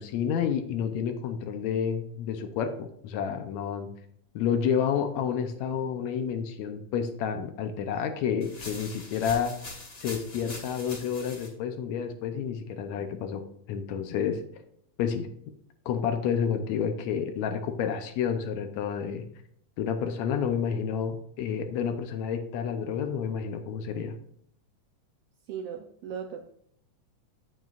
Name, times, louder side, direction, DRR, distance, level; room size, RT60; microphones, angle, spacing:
voice 1, 0.0-3.9 4.4-9.6 10.0-14.4 15.0-15.3 15.9-19.3 19.8-24.2, left 7 dB, 75° left, 7 dB, 1.9 m, -30 dB
sound 1, 8.4-11.5, left 2 dB, 35° left, 2.3 m, -42 dB
voice 2, 25.5-26.5, right 7 dB, 90° right, 5 dB, 1.3 m, -37 dB
9.0 x 8.2 x 2.4 m, 0.69 s
omnidirectional pair, 3.4 m